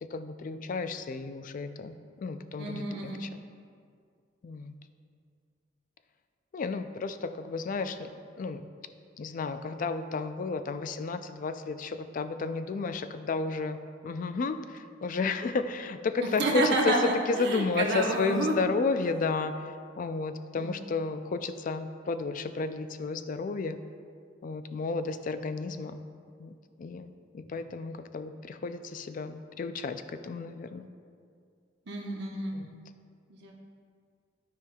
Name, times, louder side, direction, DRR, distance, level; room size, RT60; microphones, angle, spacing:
voice 1, 0.0-3.4 4.4-4.7 6.5-8.6 9.2-13.8 14.0-19.5 20.0-23.8 24.4-26.0 26.4-27.1 27.3-30.9 32.5-32.8, left 4 dB, 45° left, 10 dB, 0.3 m, -32 dB
voice 2, 2.6-3.2 16.2-18.6 20.6-20.8 31.9-32.6 33.3-33.6, right 2 dB, 65° right, -1 dB, 1.1 m, -29 dB
12.5 x 5.1 x 2.3 m, 2.2 s
head